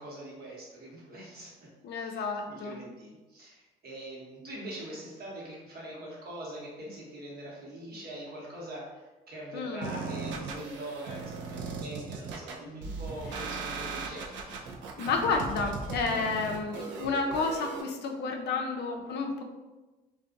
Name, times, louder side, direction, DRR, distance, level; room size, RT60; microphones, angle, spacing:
voice 1, 0.0-14.6, right 1 dB, 55° right, -4 dB, 1.0 m, -43 dB
voice 2, 1.8-2.8 9.5-10.0 15.0-19.4, left 4 dB, 60° left, 3 dB, 0.4 m, -31 dB
sound 1, 9.8-17.8, right 4 dB, 70° right, 0.4 m, -38 dB
2.4 x 2.2 x 2.5 m, 1.2 s
supercardioid pair, 60°, 19 cm